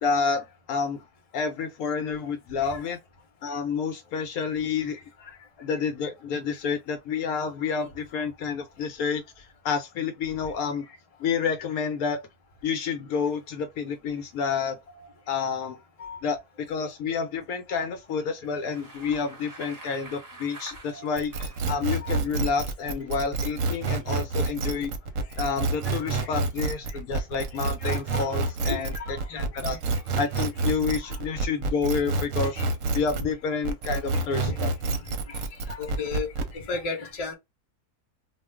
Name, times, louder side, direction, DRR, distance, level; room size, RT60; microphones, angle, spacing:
voice 1, 0.0-1.0 1.3-3.0 3.4-5.0 5.6-10.9 11.2-12.2 12.6-14.8 15.3-15.8 16.2-24.9 25.4-28.9 29.3-29.8 30.2-32.6 32.9-34.7, left 5 dB, 75° left, 1.0 m, -29 dB
Bicycle, 18.4-21.7, right 2 dB, 20° right, 0.7 m, -46 dB
sound 1, 21.2-33.3 33.6-36.5, right 3 dB, 65° right, 0.9 m, -28 dB
voice 2, 27.8-28.3 28.7-29.8 32.5-32.6 33.2-33.3 34.4-34.5 35.3-35.4 35.7-36.3 36.5-37.3, left 4 dB, 30° left, 0.7 m, -34 dB
2.4 x 2.4 x 3.3 m
omnidirectional pair, 1.7 m